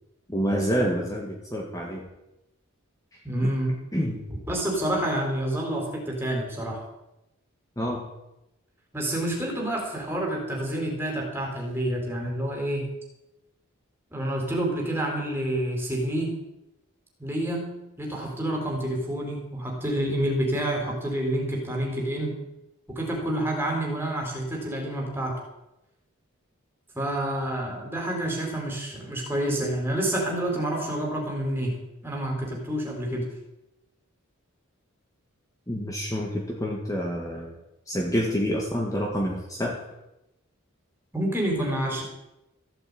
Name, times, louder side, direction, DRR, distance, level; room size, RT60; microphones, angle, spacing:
voice 1, 0.3-2.1 3.1-3.5 3.9-4.2 7.8-8.1 35.7-37.5 37.9-39.8, equal, 15° left, -1 dB, 1.9 m, -28 dB
voice 2, 3.2-3.8 4.5-6.8 8.9-12.9 14.1-16.3 17.2-22.4 22.9-25.4 26.9-31.8 32.0-33.3 41.1-42.0, right 1 dB, 10° right, 0 dB, 4.0 m, -28 dB
15.0 x 8.1 x 8.7 m, 0.91 s
head